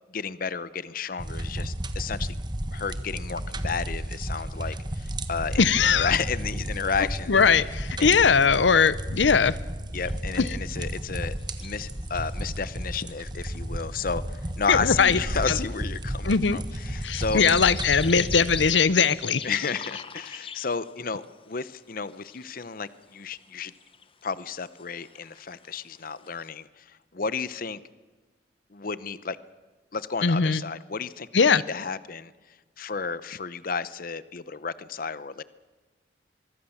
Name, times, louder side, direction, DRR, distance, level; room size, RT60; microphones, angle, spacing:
voice 1, 0.1-2.4 2.7-7.5 8.0-8.2 9.9-17.4 19.4-23.7 24.2-27.8 28.7-29.4 29.9-35.4, left 5 dB, 50° left, 16 dB, 0.8 m, -32 dB
sound 1, 1.2-18.7, right 1 dB, 25° right, 1.4 m, -33 dB
voice 2, 5.6-6.1 7.3-9.5 10.4-10.5 14.7-15.2 15.5-15.6 16.2-16.6 17.0-19.4 30.2-30.6 31.3-31.6, left 5 dB, 90° left, 17 dB, 0.7 m, -20 dB
sound 2, 10.0-12.5 12.8-12.9 13.1-13.6 13.9-14.0 14.5-14.6 15.2-21.3 21.7-21.8 22.1-22.6 23.0-23.5 23.7-26.5, left 7 dB, 30° left, 1.1 m, -42 dB
24.5 x 22.0 x 7.2 m, 1.3 s
head